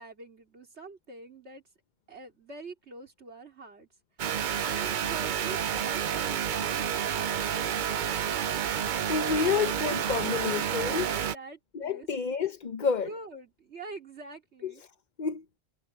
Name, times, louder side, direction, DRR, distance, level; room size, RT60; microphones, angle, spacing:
voice 1, 0.0-1.6 2.1-3.9 4.6-7.8 9.7-12.1 13.1-14.8, right 3 dB, 80° right, 3.2 m, -45 dB
sound 1, 4.2-11.4, right 8 dB, 55° right, 0.7 m, -30 dB
voice 2, 9.0-11.1 11.7-13.1 14.6-14.9 15.2-15.4, left 6 dB, 45° left, 0.8 m, -29 dB
omnidirectional pair, 1.1 m